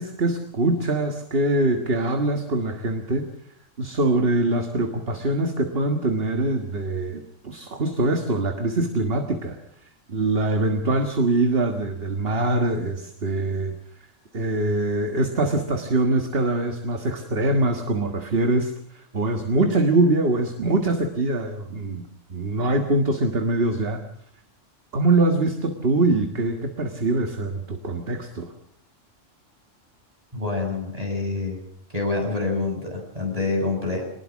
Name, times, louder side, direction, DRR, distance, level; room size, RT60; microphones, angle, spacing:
voice 1, 0.0-3.3 3.8-9.6 10.1-13.7 14.3-22.0 22.3-24.0 24.9-28.5, right 2 dB, 50° right, 5 dB, 1.8 m, -23 dB
voice 2, 30.3-31.6 31.9-34.0, left 3 dB, 30° right, 2 dB, 7.0 m, -26 dB
23.5 x 20.0 x 6.2 m, 0.65 s
omnidirectional pair, 1.3 m